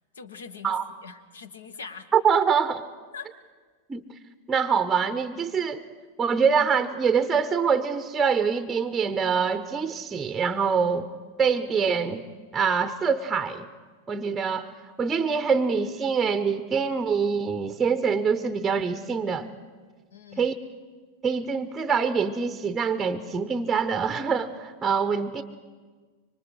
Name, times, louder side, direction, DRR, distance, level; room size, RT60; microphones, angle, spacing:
voice 1, 0.1-0.8 1.0-2.1 3.1-3.3 20.1-20.5, left 5 dB, 70° left, 12 dB, 1.2 m, -42 dB
voice 2, 2.1-2.8 3.9-4.0 4.5-5.8 6.2-11.1 11.4-12.2 12.5-13.7 14.1-14.7 15.0-19.5 20.4-20.5 21.2-25.4, right 6 dB, 15° right, 11 dB, 0.7 m, -24 dB
25.0 x 24.5 x 4.8 m, 1.5 s
figure-of-eight pair, 90°, 0 cm